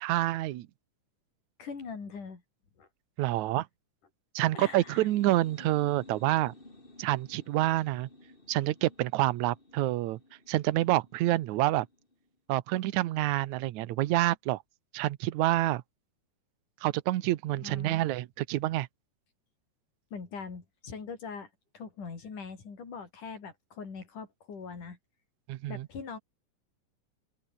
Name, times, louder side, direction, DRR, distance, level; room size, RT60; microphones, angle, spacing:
voice 1, 0.0-0.7 3.2-3.7 4.4-6.5 7.0-8.1 8.5-10.2 10.5-11.9 12.5-14.6 14.9-15.8 16.8-18.9 25.5-25.9, right 16 dB, 75° right, 2.2 m, -27 dB
voice 2, 1.6-2.4 2.8-2.9 4.4-5.1 17.6-17.9 20.1-21.5 21.7-25.0 25.7-26.2, left 5 dB, 75° left, 6.4 m, -42 dB
sound 1, 4.7-12.2, left 2 dB, 15° left, 4.2 m, -54 dB
open air
omnidirectional pair, 3.7 m